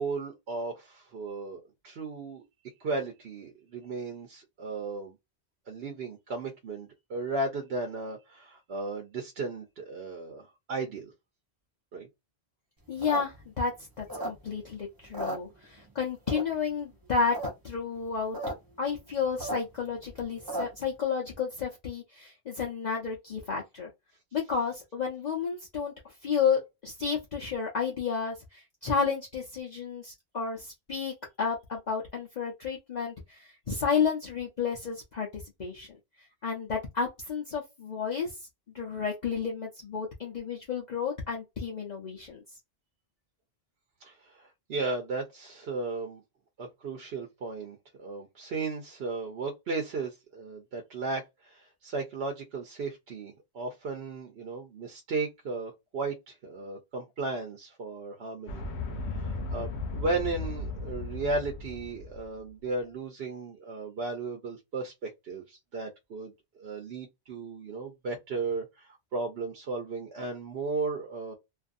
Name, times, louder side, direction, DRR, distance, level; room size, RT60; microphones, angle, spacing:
voice 1, 0.0-2.4 2.8-5.1 5.7-11.1 11.9-12.1 44.0-46.2 46.6-58.6 59.1-66.3 66.6-71.3, right 3 dB, 70° right, 0.9 m, -35 dB
voice 2, 12.9-13.7 14.0-17.4 17.6-18.4 18.8-23.9 24.3-36.0 36.4-38.4 38.7-42.4, left 6 dB, 45° left, 0.8 m, -31 dB
sound 1, 12.9-14.7 15.0-15.9 16.3-16.7 17.1-17.5 17.8-17.9 18.0-18.5 18.9-20.9, right 1 dB, 20° right, 0.9 m, -36 dB
sound 2, 58.5-62.4, left 3 dB, 85° left, 1.0 m, -36 dB
2.6 x 2.5 x 2.5 m
omnidirectional pair, 1.1 m